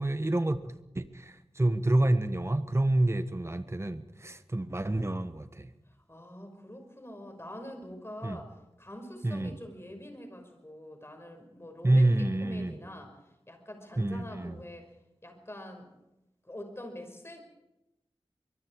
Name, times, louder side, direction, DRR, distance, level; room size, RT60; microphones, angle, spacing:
voice 1, 0.0-5.7 8.2-8.4 9.2-9.5 11.8-12.7 14.0-14.5, right 1 dB, 25° right, 10 dB, 1.4 m, -28 dB
voice 2, 5.9-13.1 13.5-14.9 15.2-15.9 16.4-17.4, left 1 dB, 25° left, 5 dB, 5.6 m, -45 dB
24.5 x 22.0 x 4.8 m, 0.91 s
wide cardioid pair, 75°, 10 cm